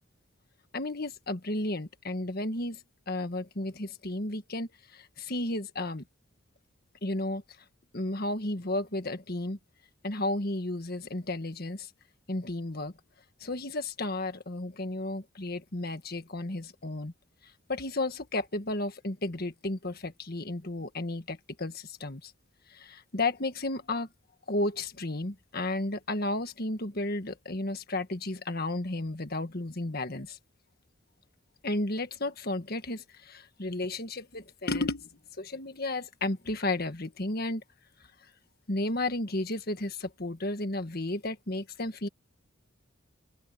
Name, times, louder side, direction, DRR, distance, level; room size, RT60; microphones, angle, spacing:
voice 1, 0.7-2.8 3.1-6.0 7.0-7.4 7.9-9.6 10.0-11.9 12.3-12.9 13.4-17.1 17.7-22.3 22.7-24.1 24.5-30.4 31.6-35.1 35.4-37.6 38.7-42.1, left 2 dB, 50° left, 1.6 m, -33 dB
open air
head